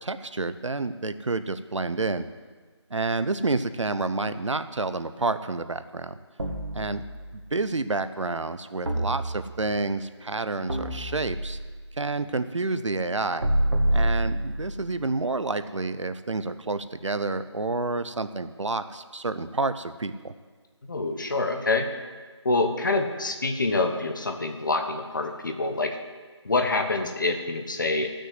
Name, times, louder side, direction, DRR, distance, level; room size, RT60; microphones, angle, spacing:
voice 1, 0.0-2.3 2.9-6.2 6.7-11.6 11.9-13.5 13.9-20.3, right 3 dB, 80° right, 11 dB, 0.8 m, -29 dB
sound 1, 6.4-7.5 8.9-9.8 10.7-11.8 13.4-14.8, right 1 dB, 65° right, 2.2 m, -27 dB
voice 2, 20.9-21.9 22.4-26.0 26.4-28.1, left 3 dB, 40° left, 5 dB, 1.1 m, -26 dB
13.0 x 6.5 x 7.7 m, 1.5 s
figure-of-eight pair, 170°, 15 cm